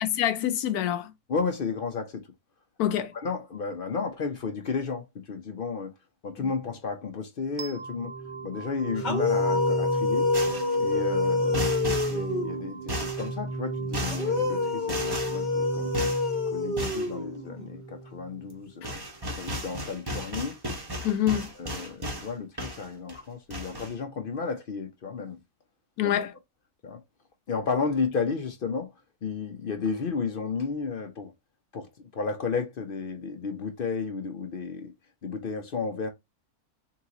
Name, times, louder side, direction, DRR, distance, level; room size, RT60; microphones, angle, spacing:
voice 1, 0.0-1.1 2.8-3.1 6.4-6.5 21.0-21.5 26.0-26.3, left 11 dB, 85° left, 1.1 m, -26 dB
voice 2, 1.3-2.3 2.9-5.9 6.2-8.2 8.4-10.5 10.8-11.7 12.1-15.9 16.5-20.6 21.6-25.4 26.0-26.3 26.8-27.0 27.5-28.9 29.2-31.3 31.7-34.9 35.2-36.1, left 5 dB, 55° left, 0.6 m, -33 dB
sound 1, 7.6-18.5, right 4 dB, 75° right, 1.2 m, -35 dB
sound 2, 9.0-12.7 14.0-17.7, left 3 dB, 35° left, 0.9 m, -27 dB
sound 3, 10.3-10.8 11.5-12.2 12.9-13.3 13.9-14.3 14.9-15.4 15.9-16.3 16.8-17.1 18.5-18.6 18.8-22.3 22.6-23.2 23.5-23.9, equal, 20° right, 0.8 m, -34 dB
3.8 x 3.0 x 3.7 m
omnidirectional pair, 1.6 m